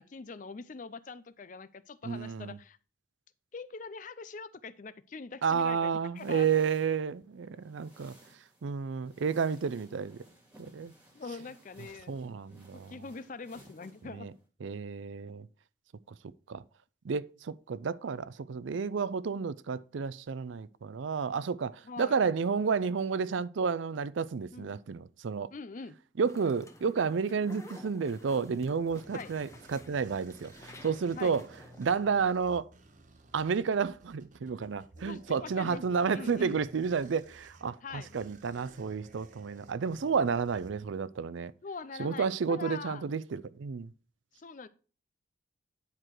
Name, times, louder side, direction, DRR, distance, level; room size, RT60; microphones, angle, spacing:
voice 1, 0.0-2.8 3.5-6.6 11.1-12.2 12.7-14.3 21.8-22.2 24.5-24.7 25.5-26.0 29.1-29.3 31.2-31.3 35.0-36.5 37.8-38.2 41.6-43.0 44.4-44.7, left 4 dB, 40° left, 0.4 m, -43 dB
voice 2, 2.0-2.6 5.4-8.1 8.6-10.2 10.6-10.9 12.1-12.9 14.1-14.3 14.6-15.5 16.5-16.6 17.0-25.5 26.2-31.5 31.8-32.7 33.3-41.5 42.0-43.9, right 5 dB, 70° right, 0.4 m, -31 dB
sound 1, 6.2-14.5, right 1 dB, 10° right, 2.0 m, -59 dB
sound 2, 26.2-31.8, left 2 dB, 15° left, 0.8 m, -52 dB
sound 3, 28.4-41.3, right 2 dB, 40° right, 0.9 m, -56 dB
9.9 x 4.7 x 4.5 m
head